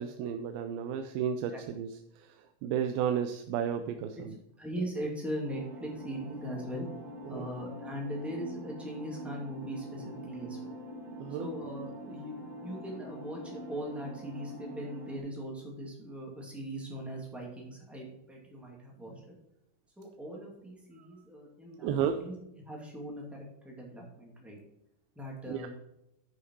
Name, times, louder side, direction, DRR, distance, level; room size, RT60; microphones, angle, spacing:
voice 1, 0.0-1.9 2.6-4.3 7.3-7.5 11.2-11.5 21.8-22.2 25.5-25.7, right 8 dB, 80° right, 7 dB, 2.4 m, -32 dB
voice 2, 4.6-6.9 7.3-10.7 11.4-19.2 20.0-22.3 22.6-24.6 25.1-25.7, equal, ahead, -2 dB, 1.3 m, -40 dB
sound 1, 5.4-15.2, equal, 65° right, 0.4 m, -44 dB
10.5 x 5.8 x 4.7 m, 0.85 s
omnidirectional pair, 4.4 m